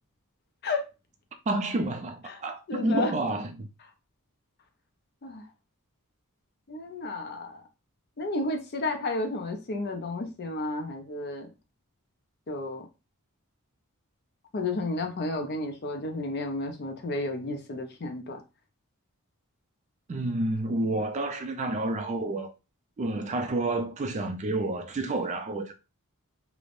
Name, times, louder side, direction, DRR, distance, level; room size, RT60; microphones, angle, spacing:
voice 1, 1.5-3.7 20.1-22.5 23.0-25.7, right 2 dB, 30° right, 0.3 m, -29 dB
voice 2, 2.7-3.1 5.2-5.4 6.7-7.6 8.2-11.5 12.5-12.9 14.5-18.4, left 2 dB, 45° left, 0.5 m, -32 dB
3.0 x 2.0 x 2.5 m
head